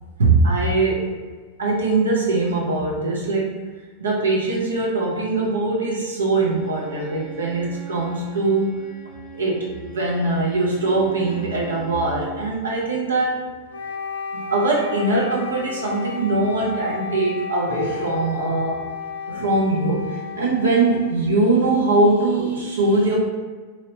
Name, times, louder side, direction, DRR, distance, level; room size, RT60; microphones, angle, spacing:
voice 1, 0.2-1.1 1.6-3.7 4.0-8.9 9.4-13.4 14.3-18.8 19.3-23.2, right 2 dB, 70° right, -4 dB, 0.7 m, -21 dB
Bowed string instrument, 6.4-12.4, right 4 dB, 20° right, 0.5 m, -40 dB
Wind instrument woodwind instrument, 13.7-21.8, left 5 dB, 70° left, 0.3 m, -33 dB
3.0 x 2.7 x 2.8 m, 1.4 s
figure-of-eight pair, 90°, 0 cm